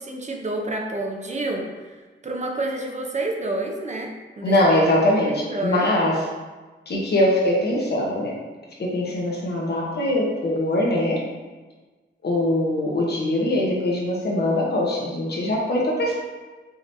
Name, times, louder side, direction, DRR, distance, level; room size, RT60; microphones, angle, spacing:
voice 1, 0.0-2.0 2.2-4.6 5.3-5.9, right 2 dB, 35° right, 1 dB, 0.7 m, -29 dB
voice 2, 4.4-6.2 6.9-8.3 8.8-11.2 12.2-16.2, left 1 dB, 55° left, -3 dB, 1.0 m, -22 dB
4.9 x 2.9 x 2.7 m, 1.3 s
cardioid pair, 80°, 21 cm